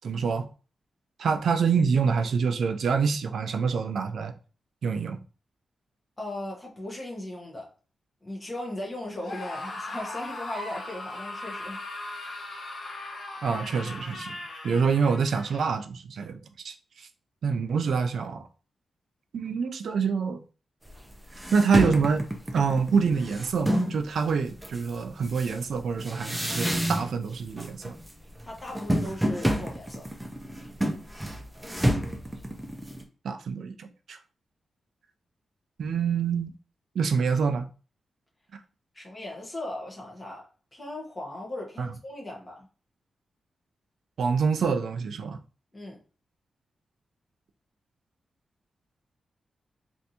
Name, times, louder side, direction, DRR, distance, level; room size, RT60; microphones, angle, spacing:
voice 1, 0.0-0.5 1.2-4.3 4.8-5.2 13.4-17.1 17.4-18.5 19.3-20.4 21.5-22.3 22.5-27.9 33.2-34.2 35.8-36.5 37.0-37.7 41.8-41.9 44.2-45.4, right 5 dB, 65° right, 0.4 m, -26 dB
voice 2, 6.2-7.7 8.2-11.8 28.4-30.1 38.9-40.5 40.7-42.7 45.7-46.0, left 1 dB, 20° left, 1.0 m, -37 dB
Screaming, 9.2-15.7, left 2 dB, 50° left, 0.9 m, -38 dB
sound 1, 20.9-21.0 21.3-24.0 24.6-27.3 27.6-28.1 28.4-33.0, equal, 10° right, 0.5 m, -29 dB
3.3 x 2.6 x 2.8 m
wide cardioid pair, 180°, 0 cm